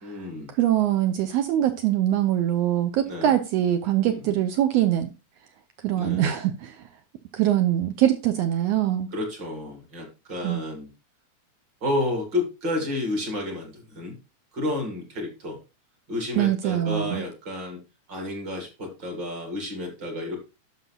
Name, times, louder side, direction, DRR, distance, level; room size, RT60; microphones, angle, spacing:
voice 1, 0.0-0.5 3.0-3.3 4.0-4.3 5.9-6.3 9.1-10.9 11.8-14.2 14.5-15.6 16.1-17.8 18.1-20.4, left 2 dB, 40° right, 2.3 m, -31 dB
voice 2, 0.6-5.1 5.8-6.8 7.3-9.1 10.4-10.6 16.4-17.2, right 12 dB, 75° right, 1.5 m, -23 dB
11.5 x 5.9 x 2.3 m
omnidirectional pair, 3.4 m